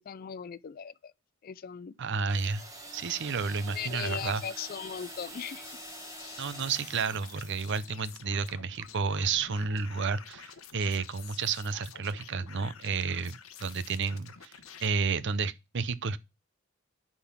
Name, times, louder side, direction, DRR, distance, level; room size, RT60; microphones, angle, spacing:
voice 1, 0.1-1.1 1.4-1.9 3.7-5.7, left 8 dB, 45° left, 0.4 m, -38 dB
voice 2, 2.0-2.6 2.9-4.4 6.4-14.5 14.8-16.2, right 5 dB, 60° right, 0.6 m, -31 dB
sound 1, 2.3-7.9, right 2 dB, 15° right, 1.3 m, -46 dB
sound 2, 5.0-14.9, left 8 dB, 85° left, 1.1 m, -50 dB
10.0 x 3.9 x 7.3 m
head